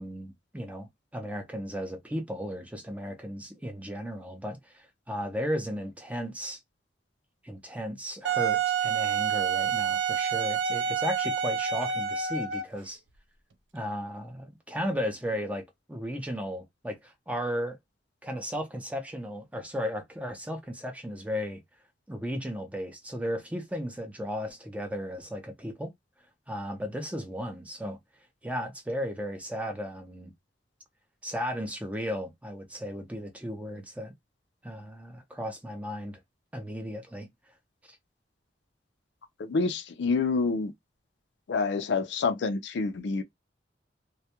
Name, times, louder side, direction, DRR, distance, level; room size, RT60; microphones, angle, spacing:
voice 1, 0.0-6.6 7.4-13.0 13.7-17.8 18.2-21.6 22.1-25.9 26.5-28.0 28.4-30.3 31.2-34.1 34.6-36.2 36.5-37.3, equal, 10° right, 0.5 m, -35 dB
Wind instrument woodwind instrument, 8.2-12.8, right 7 dB, 85° right, 0.4 m, -28 dB
voice 2, 39.4-40.7 41.5-43.2, left 4 dB, 75° left, 0.4 m, -27 dB
2.2 x 2.1 x 2.8 m
head